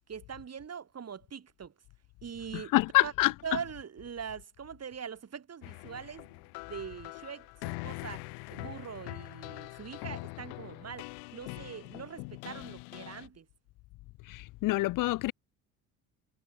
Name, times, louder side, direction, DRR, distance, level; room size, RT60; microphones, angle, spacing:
voice 1, 0.1-1.7 2.2-2.7 3.0-3.1 3.4-6.4 6.7-8.2 8.5-11.1 11.3-13.5, right 7 dB, 40° right, 6.5 m, -42 dB
voice 2, 2.5-3.3 14.3-15.3, left 18 dB, 60° left, 0.5 m, -26 dB
sound 1, 5.6-13.3, left 34 dB, 85° left, 1.2 m, -43 dB
supercardioid pair, 75°, 37 cm